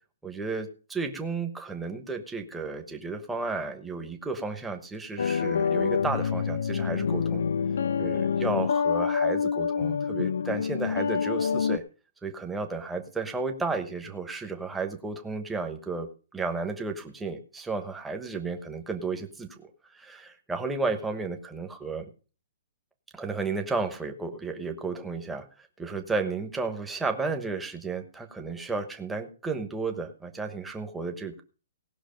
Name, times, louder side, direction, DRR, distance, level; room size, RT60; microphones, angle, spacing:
voice 1, 0.2-7.4 8.0-11.8 12.2-19.6 19.9-22.0 23.1-31.4, right 4 dB, 5° right, 4 dB, 1.1 m, -33 dB
sound 1, 5.2-11.8, left 6 dB, 75° left, 0.5 m, -27 dB
18.5 x 6.2 x 5.2 m, 0.37 s
hypercardioid pair, 175°, 0 cm